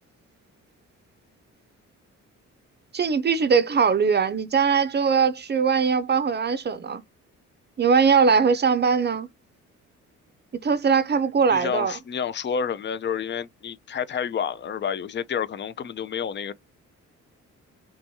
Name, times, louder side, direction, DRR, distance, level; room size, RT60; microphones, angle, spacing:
voice 1, 2.9-7.0 7.8-9.3 10.6-11.9, right 6 dB, 35° right, 0.6 m, -21 dB
voice 2, 11.5-16.5, left 7 dB, 40° left, 0.5 m, -29 dB
3.5 x 3.0 x 2.7 m
cardioid pair, 90°, 30 cm